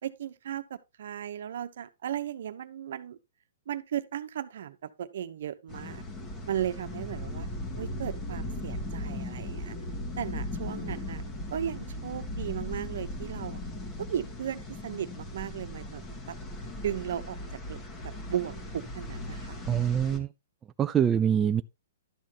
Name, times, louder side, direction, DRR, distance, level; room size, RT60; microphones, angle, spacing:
voice 1, 0.0-3.2 3.7-6.0 6.5-7.5 7.8-9.8 10.2-11.2 11.5-13.6 14.0-16.4 16.8-17.4 17.7-19.6, right 10 dB, 65° right, 1.0 m, -36 dB
sound 1, 5.7-20.2, left 1 dB, 20° left, 1.7 m, -38 dB
voice 2, 19.6-20.3 20.8-21.6, right 9 dB, 15° right, 0.4 m, -24 dB
12.0 x 6.5 x 3.0 m
hypercardioid pair, 155°, 0 cm